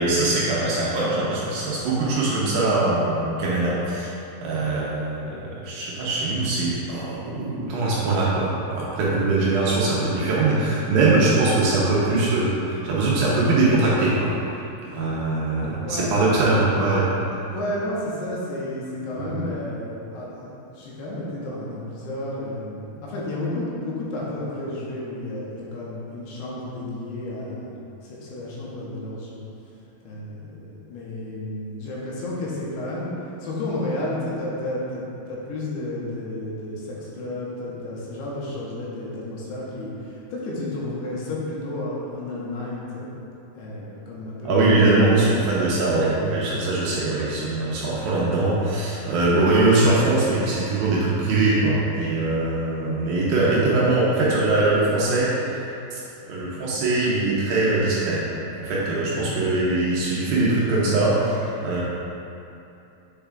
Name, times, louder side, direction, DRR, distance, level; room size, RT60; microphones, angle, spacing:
voice 1, 0.0-4.1 4.4-14.3 14.9-17.1 19.2-19.3 44.4-55.6 55.9-56.0 56.3-58.2 58.6-61.8, right 2 dB, 75° right, -6 dB, 2.4 m, -22 dB
voice 2, 15.8-16.2 17.5-27.7 28.1-29.4 30.0-33.1 33.4-39.9 40.3-43.1 43.5-44.8 45.1-45.5 46.5-46.7 59.1-59.2, left 1 dB, 80° left, -6 dB, 3.0 m, -32 dB
7.3 x 6.9 x 2.4 m, 2.8 s
omnidirectional pair, 4.8 m